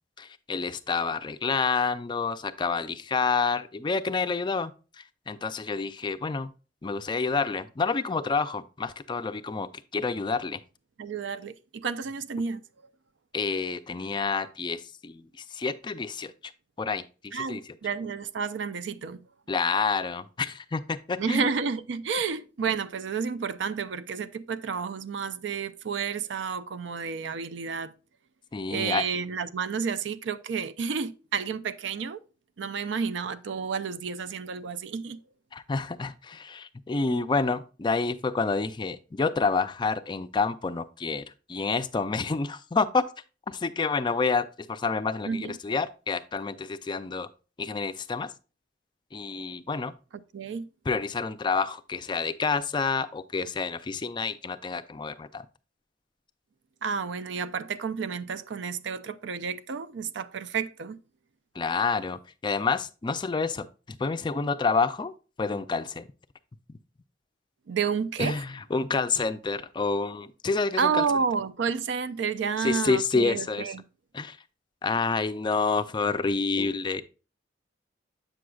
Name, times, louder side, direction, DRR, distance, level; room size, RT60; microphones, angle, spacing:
voice 1, 0.2-4.7 5.3-6.5 6.8-10.6 13.3-15.2 15.5-16.3 16.8-17.6 19.5-21.5 28.5-29.0 35.5-43.0 43.5-47.3 47.6-48.3 49.1-49.9 50.9-55.5 61.6-63.7 64.0-65.1 65.4-66.0 68.2-71.0 72.6-73.6 74.1-74.4 74.8-77.0, left 4 dB, 25° left, 0.4 m, -28 dB
voice 2, 11.0-12.6 17.3-19.2 21.2-27.9 28.7-32.2 32.6-35.2 45.3-45.6 50.3-50.7 56.8-61.0 67.7-68.4 70.7-73.8, right 6 dB, 70° right, 0.4 m, -30 dB
7.7 x 6.2 x 2.3 m
head